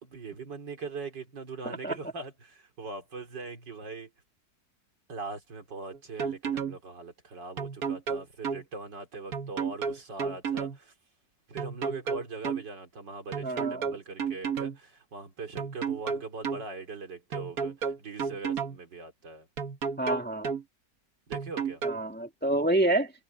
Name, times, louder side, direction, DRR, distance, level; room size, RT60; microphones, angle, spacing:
voice 1, 0.0-4.1 5.1-10.9 11.5-19.5 21.3-21.8, right 4 dB, 75° right, 4.0 m, -41 dB
sound 1, 5.9-6.8 7.6-8.6 9.3-10.8 11.6-12.6 13.3-14.8 15.6-16.6 17.3-18.8 19.6-20.6 21.3-22.0, right 6 dB, 55° right, 1.8 m, -32 dB
voice 2, 13.4-13.8 20.0-20.5 21.8-23.1, right 1 dB, 5° left, 1.8 m, -27 dB
omnidirectional pair, 1.9 m